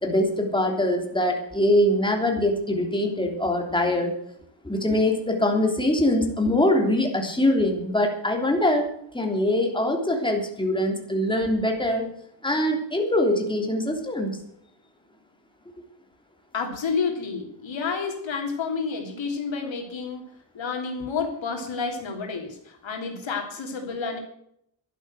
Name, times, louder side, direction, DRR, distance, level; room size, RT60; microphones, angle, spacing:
voice 1, 0.0-4.1 4.6-8.9 9.1-12.0 12.4-14.4, left 1 dB, 10° left, 1 dB, 3.3 m, -23 dB
voice 2, 16.5-24.2, left 5 dB, 85° left, 2 dB, 3.3 m, -30 dB
12.0 x 11.0 x 7.8 m, 0.72 s
wide cardioid pair, 100°, 44 cm